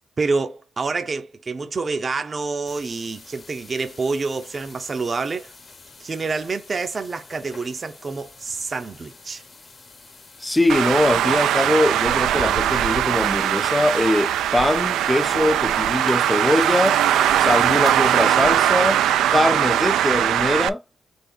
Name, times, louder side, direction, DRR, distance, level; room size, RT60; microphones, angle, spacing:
voice 1, 0.2-5.5 6.0-9.4, right 4 dB, 35° right, 0.6 m, -27 dB
sound 1, 2.7-18.2, left 4 dB, 35° left, 1.1 m, -45 dB
voice 2, 10.4-17.0 17.4-19.0 19.3-20.8, left 1 dB, 10° left, 0.3 m, -22 dB
Traffic noise roadway noise, 10.7-20.7, right 11 dB, 80° right, 0.4 m, -20 dB
3.7 x 3.5 x 3.9 m
cardioid pair, 90°, 0 cm